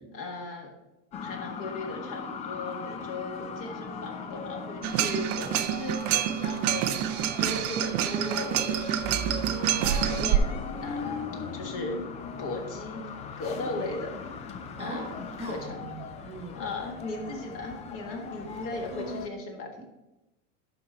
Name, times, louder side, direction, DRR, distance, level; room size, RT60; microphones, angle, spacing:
voice 1, 0.1-0.7 1.2-6.0 6.4-7.0 7.4-9.4 9.8-11.2 11.5-12.0 12.4-13.0 13.4-14.1 14.8-15.9 16.5-19.9, left 2 dB, 35° left, 2 dB, 1.6 m, -37 dB
sound 1, 1.1-19.3, left 5 dB, 20° left, 0.4 m, -39 dB
sound 2, 4.8-10.4, right 11 dB, 40° right, 0.5 m, -27 dB
voice 2, 14.8-16.0 16.2-16.6 18.9-19.3, right 1 dB, 15° right, 0 dB, 1.1 m, -39 dB
11.0 x 3.9 x 4.3 m, 0.98 s
supercardioid pair, 140°, 38 cm